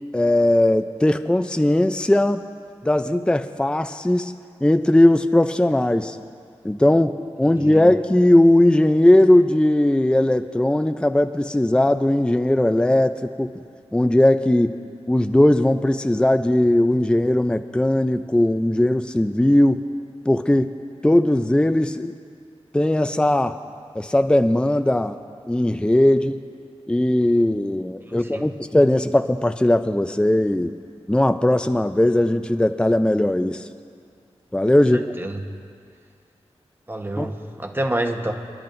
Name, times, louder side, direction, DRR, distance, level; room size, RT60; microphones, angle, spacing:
voice 1, 0.1-2.4 2.8-4.3 4.6-6.2 6.6-13.5 13.9-14.8 15.1-19.8 20.3-20.7 21.0-22.1 22.7-23.6 24.0-25.2 25.5-26.4 26.9-30.7 31.1-33.7 34.5-35.0 37.2-37.3, left 1 dB, 10° left, 8 dB, 0.5 m, -18 dB
voice 2, 7.4-7.8 28.1-28.5 34.9-35.4 36.9-38.3, right 1 dB, 20° right, 3 dB, 1.2 m, -28 dB
30.0 x 10.5 x 2.6 m, 2.3 s
cardioid pair, 55°, 11 cm